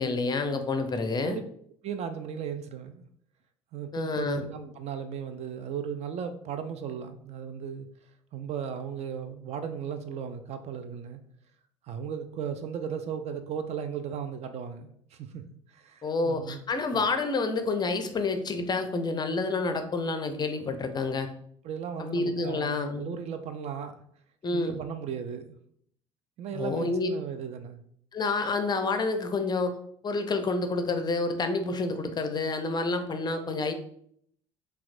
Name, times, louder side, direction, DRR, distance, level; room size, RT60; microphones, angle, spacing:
voice 1, 0.0-1.4 3.9-4.5 16.0-21.3 22.0-23.0 24.4-24.8 26.5-27.1 28.1-29.7 30.0-33.7, left 3 dB, 25° left, 7 dB, 0.5 m, -28 dB
voice 2, 1.8-3.1 3.7-7.9 8.3-11.2 11.8-15.4 15.7-16.6 16.9-17.0 21.6-24.0 24.5-25.5 26.4-27.8, right 7 dB, 40° right, 8 dB, 0.4 m, -36 dB
5.7 x 2.3 x 2.5 m, 0.66 s
figure-of-eight pair, 60°, 16 cm